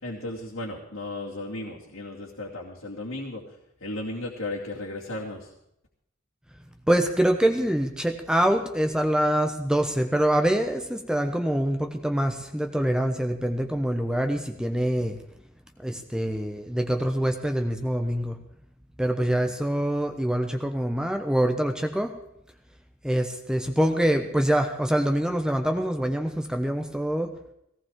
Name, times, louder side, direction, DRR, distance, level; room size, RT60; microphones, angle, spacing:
voice 1, 0.0-3.4 3.8-5.4, left 2 dB, 80° left, -5 dB, 2.6 m, -35 dB
voice 2, 6.9-15.2 15.8-18.4 19.0-22.1 23.0-27.4, right 1 dB, 5° right, 5 dB, 0.9 m, -25 dB
18.5 x 17.5 x 3.7 m, 0.78 s
head